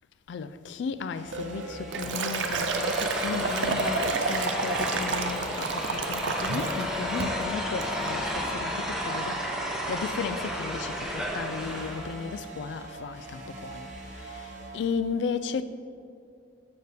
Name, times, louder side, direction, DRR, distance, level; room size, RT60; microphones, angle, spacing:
voice 1, 0.3-13.9 14.2-14.4 14.7-15.6, left 5 dB, 70° left, 0.3 m, -35 dB
sound 1, 1.1-14.8, right 2 dB, 45° right, 0.9 m, -42 dB
Liquid, 1.3-6.9 7.2-7.5 7.8-8.2, right 4 dB, 85° right, 0.5 m, -31 dB
sound 2, 1.9-12.2, equal, 5° right, 0.8 m, -32 dB
6.6 x 6.6 x 3.4 m
head